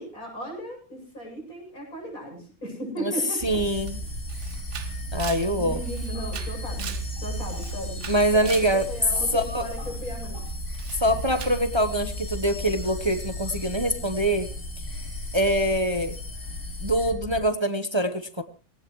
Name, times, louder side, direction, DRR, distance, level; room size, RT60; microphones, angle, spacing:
voice 1, 0.0-3.6 5.6-8.1 8.3-8.5 8.9-10.6, right 1 dB, 85° left, 0 dB, 8.5 m, -36 dB
sound 1, 3.4-17.4, equal, 55° left, 5.4 m, -35 dB
voice 2, 3.4-4.0 5.1-5.8 8.1-8.8 9.3-9.7 11.0-14.5 15.3-16.1 16.8-18.4, right 1 dB, 20° right, 9 dB, 1.1 m, -24 dB
sound 2, 3.6-17.1, left 3 dB, 40° left, 3.0 m, -43 dB
Camera, 3.9-4.0 4.3-7.1 7.5-8.8 10.7-11.0 11.4-11.6, right 8 dB, 60° right, 1.1 m, -40 dB
20.0 x 17.5 x 3.2 m, 0.36 s
omnidirectional pair, 1.5 m